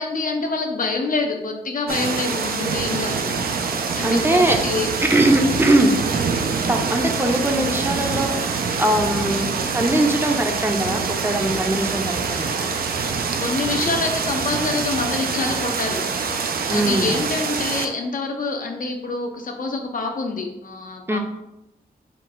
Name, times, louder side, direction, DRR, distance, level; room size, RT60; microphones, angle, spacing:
voice 1, 0.0-3.4 3.9-4.9 13.4-16.0 16.7-21.2, left 3 dB, 60° left, 3 dB, 0.7 m, -26 dB
sound 1, 1.9-17.8, right 5 dB, 65° right, 0.5 m, -25 dB
voice 2, 4.0-4.6 5.1-5.9 6.7-9.4 9.7-12.7 16.7-17.2 21.1-21.2, right 1 dB, 15° right, 4 dB, 0.6 m, -21 dB
4.6 x 2.2 x 3.9 m, 0.90 s
cardioid pair, 75°, 16 cm